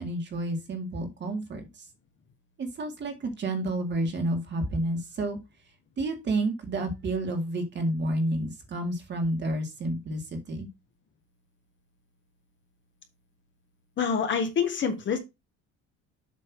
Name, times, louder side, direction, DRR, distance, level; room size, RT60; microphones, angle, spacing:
voice 1, 0.0-1.9 2.6-5.4 6.0-10.7, right 1 dB, 35° right, 5 dB, 2.0 m, -30 dB
voice 2, 14.0-15.2, left 6 dB, 35° left, 5 dB, 1.5 m, -26 dB
7.6 x 3.2 x 6.0 m, 0.23 s
cardioid pair, 150°, 32 cm